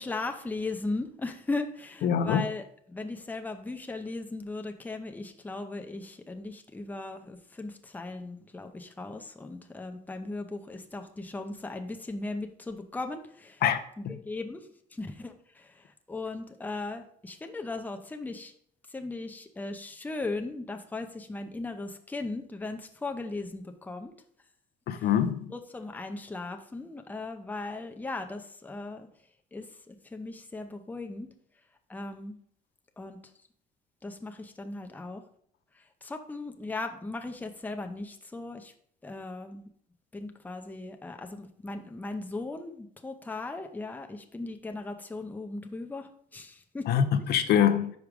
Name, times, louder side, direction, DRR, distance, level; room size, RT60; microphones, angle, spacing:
voice 1, 0.0-13.6 14.0-14.7 14.9-18.5 18.9-24.1 24.9-25.1 25.5-29.1 29.5-31.3 31.9-32.3 33.0-33.2 34.0-35.2 36.0-38.7 39.0-39.7 40.1-47.0, left 3 dB, 10° left, 0.7 m, -37 dB
voice 2, 2.0-2.4 13.6-13.8 14.0-14.2 24.9-25.5 46.9-47.9, left 9 dB, 70° left, 0.6 m, -24 dB
5.1 x 4.8 x 4.8 m
cardioid pair, 110°, 17 cm